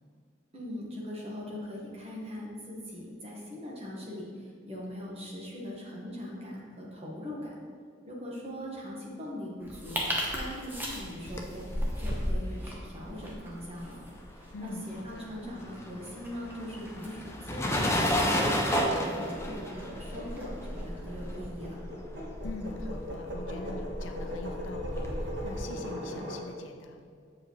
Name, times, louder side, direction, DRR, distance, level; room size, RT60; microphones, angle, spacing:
voice 1, 0.5-7.5 8.0-11.7 12.0-14.0 14.6-18.6 19.0-21.8, left 1 dB, 30° right, -4 dB, 1.3 m, -41 dB
sound 1, 9.6-21.7, equal, 10° right, 0.8 m, -42 dB
sound 2, 11.0-14.7 14.9-25.7, equal, 15° left, 0.5 m, -33 dB
voice 2, 14.5-15.3 22.4-27.0, left 3 dB, 75° left, 5 dB, 0.5 m, -43 dB
sound 3, 18.3-26.4, equal, 60° right, 1.2 m, -39 dB
7.5 x 4.8 x 3.1 m, 2.1 s
head